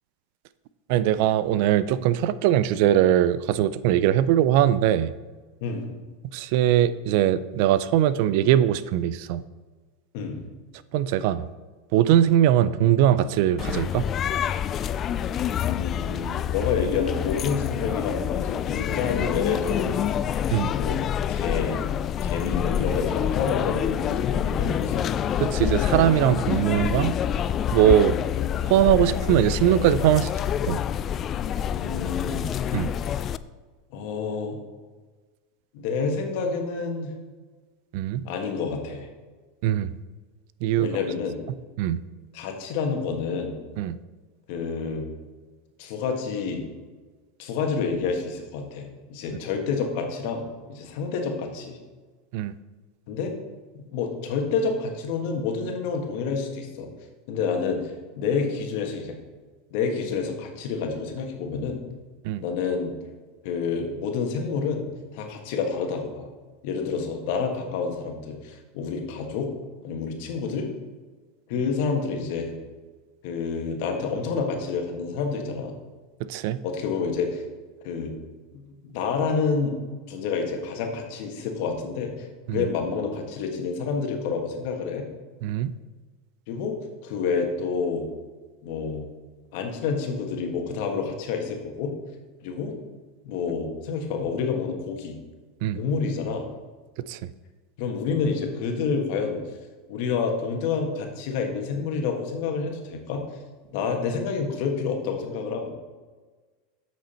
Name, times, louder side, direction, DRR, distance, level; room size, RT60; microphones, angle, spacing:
voice 1, 0.9-5.1 6.3-9.4 10.9-11.5 11.9-14.0 20.5-20.7 25.4-27.2 27.7-28.2 28.7-30.3 30.6-30.8 32.7-32.9 37.9-38.2 39.6-39.9 40.6-40.9 41.8-42.0 43.8-44.0 52.3-52.6 62.2-62.4 76.2-76.6 82.5-82.7 85.4-85.7 95.6-95.8 97.1-97.2, right 11 dB, 65° right, 16 dB, 0.4 m, -21 dB
sound 1, 13.6-33.4, left 9 dB, 35° left, 0.3 m, -27 dB
voice 2, 15.6-20.0 20.7-21.8 22.2-25.1 31.7-32.5 33.0-33.1 33.9-34.6 35.7-37.1 38.2-39.1 40.8-41.4 42.3-43.6 44.5-45.0 45.8-46.6 47.4-51.8 53.1-53.3 53.7-56.9 57.3-59.1 59.7-61.8 62.4-62.9 63.4-66.3 66.6-69.5 69.8-70.7 71.5-72.5 73.2-75.7 76.6-77.4 77.8-78.1 78.5-79.8 80.1-82.3 82.5-85.0 86.5-86.7 87.0-88.1 88.6-89.1 89.5-91.9 92.4-92.7 93.2-95.2 95.7-96.4 97.8-99.4 99.9-103.2 103.7-105.7, left 5 dB, 65° left, 3 dB, 1.6 m, -28 dB
8.0 x 6.2 x 4.3 m, 1.3 s
supercardioid pair, 115°, 0 cm